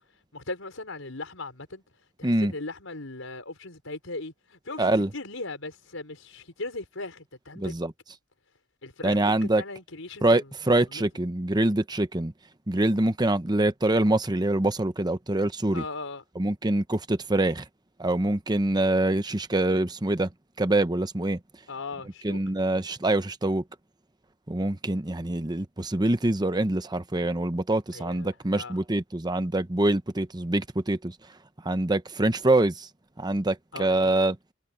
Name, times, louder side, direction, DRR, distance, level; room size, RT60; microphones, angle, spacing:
voice 1, 0.3-1.8 2.2-7.7 8.8-10.5 10.9-11.1 15.7-16.2 21.7-22.4 27.9-28.8 33.7-34.1, left 2 dB, 85° left, 5.2 m, -38 dB
voice 2, 4.8-5.1 7.6-7.9 9.0-9.6 10.2-12.3 12.7-15.8 16.4-17.6 18.0-20.3 20.6-21.4 22.2-23.6 24.5-31.2 31.6-32.9 33.2-34.4, right 2 dB, 20° right, 0.9 m, -25 dB
head